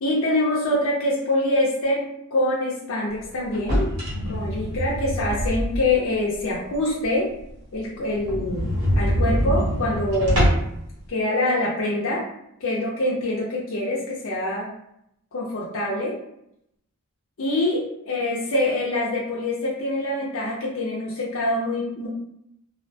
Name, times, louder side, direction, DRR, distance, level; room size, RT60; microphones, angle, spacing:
voice 1, 0.0-2.1 2.3-3.9 4.3-7.3 7.7-10.5 11.1-12.2 12.6-14.7 15.3-16.2 17.4-22.1, left 1 dB, 70° left, -5 dB, 0.5 m, -25 dB
sound 1, 3.5-6.1 6.5-6.6 7.0-7.1 7.4-7.5 7.7-7.8 8.2-10.8, equal, 90° right, 1.1 m, -24 dB
2.4 x 2.1 x 2.7 m, 0.78 s
head